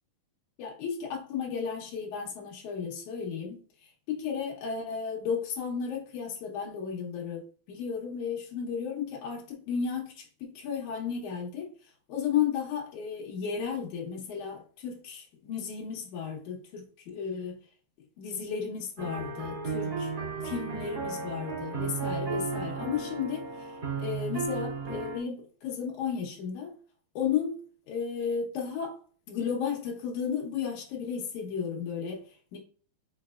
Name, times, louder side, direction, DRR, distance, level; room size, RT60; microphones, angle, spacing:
voice 1, 0.6-3.6 4.1-7.4 7.7-11.7 12.1-17.6 18.2-20.1 20.4-23.5 24.0-26.7 27.2-27.6 27.9-29.0 29.3-32.2 32.5-32.6, left 7 dB, 70° left, 1.9 m, -33 dB
sound 1, 19.0-25.2, right 4 dB, 60° right, 1.0 m, -34 dB
5.9 x 3.3 x 2.4 m
omnidirectional pair, 4.8 m